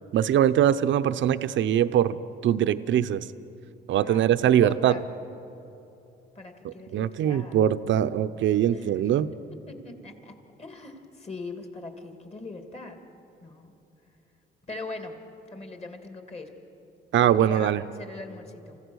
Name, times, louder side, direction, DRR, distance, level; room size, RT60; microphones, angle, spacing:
voice 1, 0.1-2.2 2.4-3.3 3.9-5.0 6.6-9.3 17.1-17.8, right 10 dB, 70° right, 12 dB, 0.7 m, -22 dB
voice 2, 4.0-5.1 6.3-7.6 8.7-9.0 9.7-13.0 13.4-13.7 14.7-15.2 15.5-16.5 17.2-18.8, left 3 dB, 30° left, 5 dB, 2.4 m, -41 dB
27.5 x 15.5 x 6.3 m, 2.9 s
cardioid pair, 90°, 20 cm